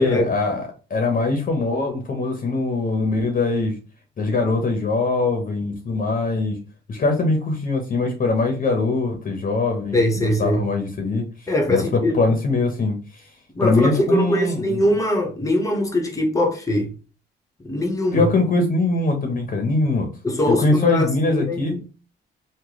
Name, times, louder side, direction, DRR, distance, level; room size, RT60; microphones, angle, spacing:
voice 1, 0.0-3.8 4.2-6.6 6.9-11.2 11.7-13.0 13.6-14.8 18.1-20.1 20.5-21.7, left 3 dB, 45° left, 0.9 m, -22 dB
voice 2, 9.9-10.6 11.5-12.2 13.5-16.9 17.6-18.2 20.2-21.8, left 1 dB, 15° left, 0.9 m, -22 dB
3.1 x 2.1 x 3.8 m
cardioid pair, 90°, 20 cm